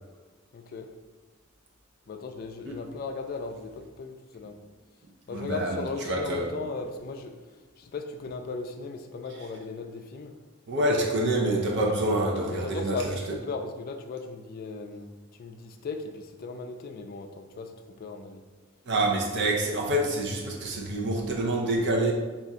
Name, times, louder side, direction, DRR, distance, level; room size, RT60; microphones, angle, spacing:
voice 1, 0.5-0.9 2.1-4.6 5.3-7.4 7.8-10.4 11.0-11.1 11.9-12.0 12.5-15.1 15.4-18.4, left 4 dB, 45° left, 5 dB, 0.3 m, -37 dB
voice 2, 5.3-6.5 10.7-13.1 18.9-22.1, right 1 dB, 55° right, 0 dB, 0.5 m, -27 dB
4.2 x 2.4 x 3.6 m, 1.3 s
head